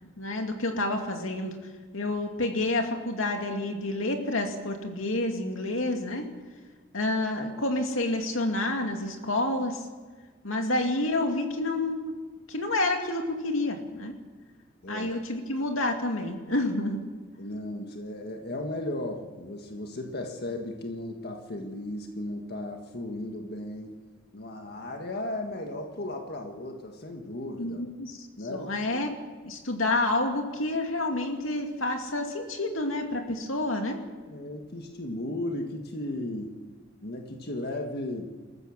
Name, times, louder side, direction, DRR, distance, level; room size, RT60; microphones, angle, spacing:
voice 1, 0.2-1.5 1.9-6.3 6.9-9.8 10.4-12.1 12.5-14.1 14.9-17.0 27.6-29.1 29.4-34.0, left 2 dB, 85° left, 4 dB, 2.5 m, -29 dB
voice 2, 14.8-15.1 17.4-23.9 24.3-27.8 28.4-28.7 34.3-36.5 37.0-38.3, left 1 dB, 55° left, 3 dB, 1.8 m, -35 dB
27.5 x 14.0 x 7.3 m, 1.4 s
head